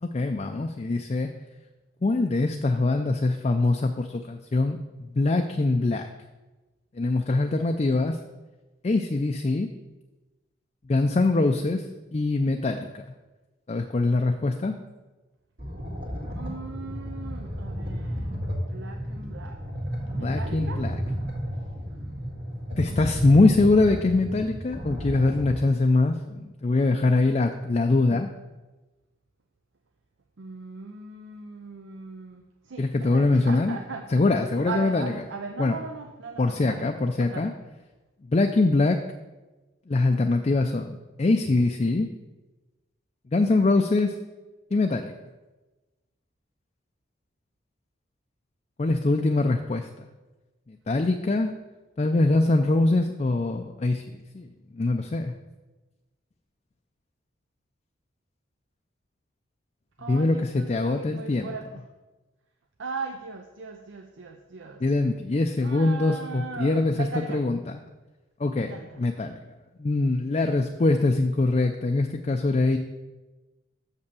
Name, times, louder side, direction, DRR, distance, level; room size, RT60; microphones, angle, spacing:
voice 1, 0.0-1.3 2.0-4.8 5.1-6.1 7.0-8.2 8.8-9.7 10.9-11.8 12.1-13.1 13.7-14.7 20.2-21.0 22.8-28.3 32.8-33.8 34.1-35.1 35.6-35.8 36.4-37.5 38.3-39.0 39.9-42.1 43.3-44.1 44.7-45.1 48.8-50.1 50.7-51.5 52.0-54.5 54.7-55.3 60.1-61.5 64.8-67.6 68.4-69.4 69.8-72.8, left 2 dB, 35° left, 5 dB, 0.4 m, -23 dB
sound 1, 15.6-25.6, equal, 55° right, 1.9 m, -33 dB
voice 2, 16.3-18.3 18.7-19.6 20.1-20.9 25.7-25.8 30.4-34.1 34.7-36.9 37.2-37.5 60.0-61.7 62.8-64.8 65.6-67.4 68.6-68.9, right 4 dB, 80° right, 4 dB, 0.6 m, -38 dB
6.9 x 5.4 x 6.9 m, 1.1 s
head